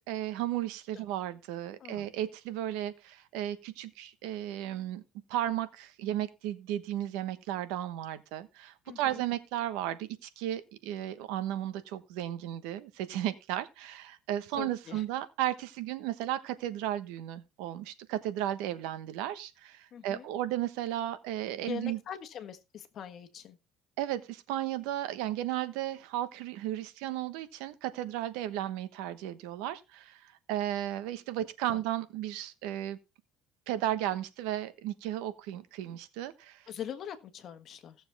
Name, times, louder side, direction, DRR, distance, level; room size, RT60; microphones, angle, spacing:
voice 1, 0.1-5.0 5.3-22.0 24.0-33.0 33.7-36.6, right 12 dB, 90° right, 1.1 m, -34 dB
voice 2, 8.9-9.2 14.6-15.0 19.9-20.3 21.6-23.6 31.7-31.8 36.7-38.0, left 9 dB, 40° left, 1.5 m, -42 dB
16.5 x 7.0 x 3.4 m
cardioid pair, 150°, 0 cm